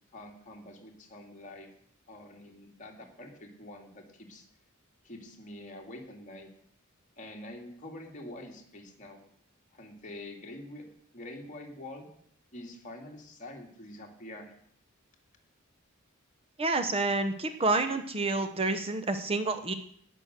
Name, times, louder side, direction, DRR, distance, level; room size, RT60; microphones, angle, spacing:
voice 1, 0.1-1.7 2.1-4.4 5.0-6.5 7.2-9.2 9.7-10.9 11.1-12.1 12.5-14.5, left 1 dB, 35° left, 1 dB, 2.3 m, -46 dB
voice 2, 16.6-19.7, right 3 dB, 25° right, 8 dB, 0.8 m, -28 dB
18.0 x 6.3 x 6.6 m, 0.66 s
head